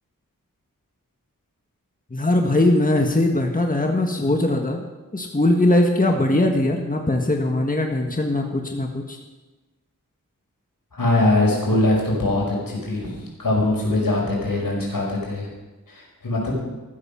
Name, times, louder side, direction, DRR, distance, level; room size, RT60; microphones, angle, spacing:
voice 1, 2.1-4.8 5.1-9.2, left 1 dB, 25° left, 3 dB, 1.6 m, -20 dB
voice 2, 10.9-13.1 13.4-15.5 15.9-16.6, left 2 dB, 90° left, -2 dB, 5.3 m, -22 dB
14.0 x 14.0 x 5.8 m, 1.2 s
wide cardioid pair, 80°, 33 cm